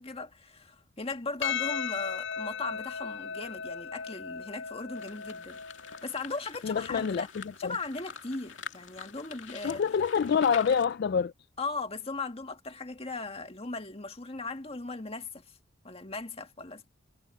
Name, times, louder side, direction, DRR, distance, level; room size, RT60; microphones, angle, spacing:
voice 1, 0.0-5.6 6.0-7.3 7.6-9.8 11.6-15.4 15.8-16.9, left 3 dB, 30° left, 1.7 m, -38 dB
Percussion, 1.4-6.0, left 6 dB, 85° left, 4.5 m, -36 dB
sound 1, 5.0-10.9, left 6 dB, 70° left, 2.6 m, -46 dB
voice 2, 6.6-7.3 7.6-7.7 9.6-11.3, left 6 dB, 55° left, 0.3 m, -26 dB
head